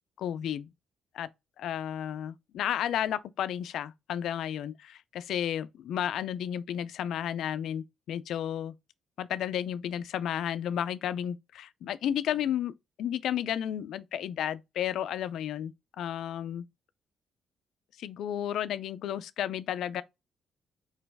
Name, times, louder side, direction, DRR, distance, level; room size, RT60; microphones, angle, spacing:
voice 1, 0.2-0.7 1.1-1.3 1.6-8.7 9.2-12.7 13.0-15.7 16.0-16.6 18.0-20.0, left 10 dB, 75° left, 0.4 m, -32 dB
3.9 x 3.0 x 3.4 m
cardioid pair, 90°, 0 cm